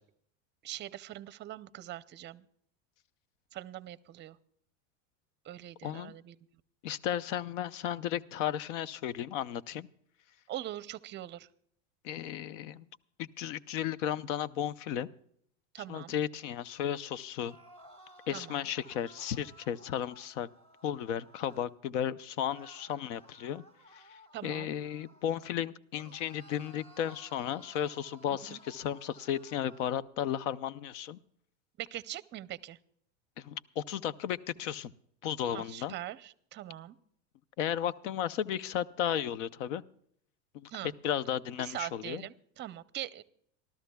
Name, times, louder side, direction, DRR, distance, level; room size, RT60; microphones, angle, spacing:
voice 1, 0.6-2.4 3.5-4.4 5.4-6.4 10.5-11.5 15.7-16.1 18.3-18.6 24.3-24.7 28.5-28.6 31.8-32.8 35.5-37.0 40.7-40.9 41.6-43.2, right 13 dB, 30° right, 16 dB, 0.6 m, -42 dB
voice 2, 5.8-6.1 6.8-9.9 12.0-12.9 13.2-15.1 15.9-17.6 18.3-20.5 20.8-23.6 23.9-31.2 33.4-34.9 35.2-35.9 37.6-39.8 40.5-40.7 41.0-42.2, left 10 dB, 75° left, 19 dB, 0.7 m, -34 dB
sound 1, 17.4-21.7 22.4-25.6 25.9-29.9, right 1 dB, 15° left, 1.6 m, -57 dB
27.5 x 13.0 x 2.3 m, 0.65 s
supercardioid pair, 115°, 37 cm